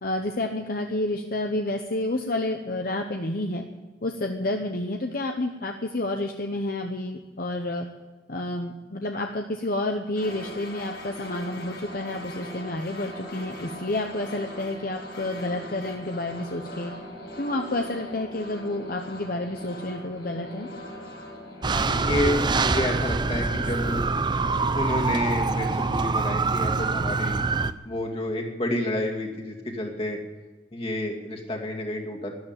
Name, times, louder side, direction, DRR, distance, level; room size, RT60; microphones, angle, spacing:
voice 1, 0.0-3.6 4.0-7.9 8.3-16.9 17.4-20.7, left 1 dB, 55° left, 4 dB, 1.0 m, -30 dB
sound 1, 10.2-24.6, equal, 70° left, 6.5 m, -40 dB
sound 2, 21.6-27.7, right 4 dB, 25° right, 0.5 m, -25 dB
voice 2, 21.8-24.0 24.7-27.4 27.8-30.2 30.7-32.3, left 1 dB, 30° left, 1 dB, 2.4 m, -29 dB
12.5 x 11.5 x 9.0 m, 1.3 s
head